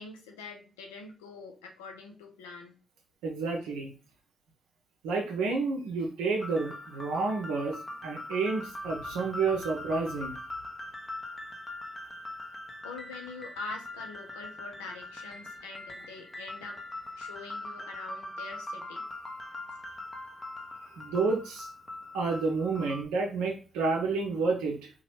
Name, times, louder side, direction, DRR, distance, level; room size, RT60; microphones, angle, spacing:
voice 1, 0.0-2.8 12.8-16.8 17.2-19.0, left 3 dB, 85° left, 2 dB, 0.6 m, -44 dB
voice 2, 3.2-3.9 5.0-10.4 20.9-21.7 22.1-24.9, right 4 dB, 80° right, -1 dB, 0.5 m, -30 dB
sound 1, 6.4-23.1, left 1 dB, 35° left, 0.6 m, -42 dB
2.9 x 2.2 x 3.1 m, 0.36 s
hypercardioid pair, 40°, 0 cm